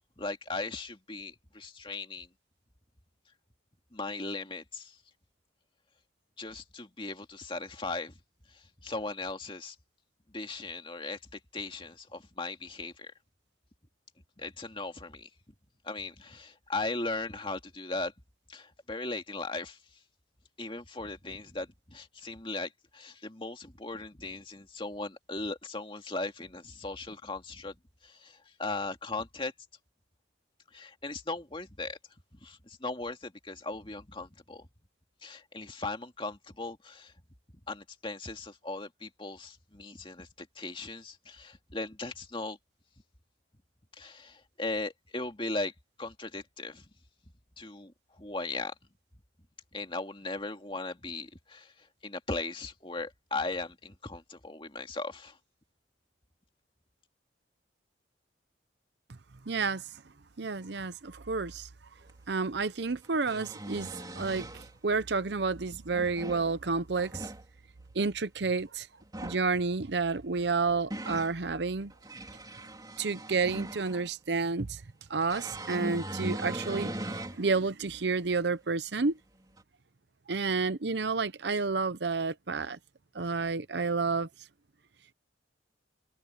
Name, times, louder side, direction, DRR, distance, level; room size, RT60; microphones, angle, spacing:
voice 1, 0.2-2.3 3.9-5.0 6.4-8.2 8.5-9.8 10.3-13.1 14.4-15.3 15.8-18.1 18.5-19.8 20.6-27.7 28.0-29.5 30.7-32.0 32.3-34.7 35.2-37.1 37.7-42.6 44.0-45.7 46.0-46.9 47.6-48.7 49.7-55.4, left 3 dB, 25° left, 2.3 m, -38 dB
voice 2, 59.5-59.8 60.4-61.7 62.3-67.3 67.9-68.9 69.2-71.9 73.0-74.8 75.1-79.2 80.3-82.8 83.1-84.3, right 4 dB, 65° right, 0.8 m, -30 dB
sound 1, 62.1-62.2 63.0-64.7 65.7-66.5 66.9-67.4 69.0-69.5 70.4-71.3 71.9-74.1 75.3-77.4 77.9-78.0 79.6-79.7, right 1 dB, 20° right, 3.5 m, -39 dB
head